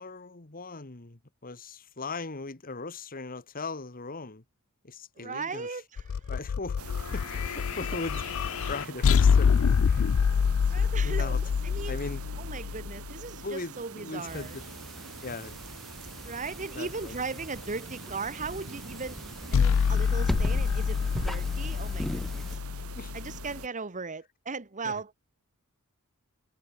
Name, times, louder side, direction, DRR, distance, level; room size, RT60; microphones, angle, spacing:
voice 1, 0.0-4.4 4.8-5.8 6.3-9.5 9.9-10.1 11.0-11.4 11.9-12.2 13.4-14.6 15.2-15.6 16.7-17.1 22.9-23.1 24.8-25.0, left 3 dB, 40° left, 1.6 m, -39 dB
voice 2, 5.2-6.3 10.7-11.4 11.6-12.0 12.4-14.6 16.2-19.2 19.5-22.5 23.1-25.1, right 4 dB, 35° right, 1.3 m, -37 dB
sound 1, 6.0-13.3 19.5-23.6, left 6 dB, 65° left, 0.4 m, -26 dB
sound 2, 6.8-23.7, right 4 dB, 75° right, 2.6 m, -45 dB
sound 3, 14.3-22.6, equal, ahead, 4.3 m, -38 dB
head